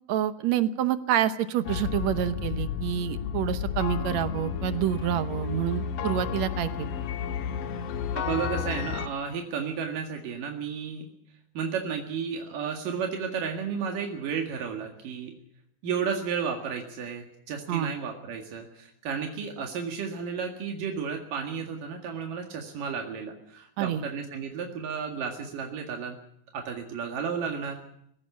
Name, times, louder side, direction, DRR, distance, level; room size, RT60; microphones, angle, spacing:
voice 1, 0.1-6.9 17.7-17.9 23.8-24.0, right 10 dB, 65° right, 12 dB, 2.0 m, -27 dB
sound 1, 1.7-9.1, left 8 dB, 85° left, 2.8 m, -32 dB
voice 2, 8.2-11.1 11.6-15.3 15.8-26.2 26.5-27.8, right 6 dB, 85° right, 3 dB, 3.6 m, -33 dB
19.5 x 17.0 x 8.4 m, 0.74 s
omnidirectional pair, 3.7 m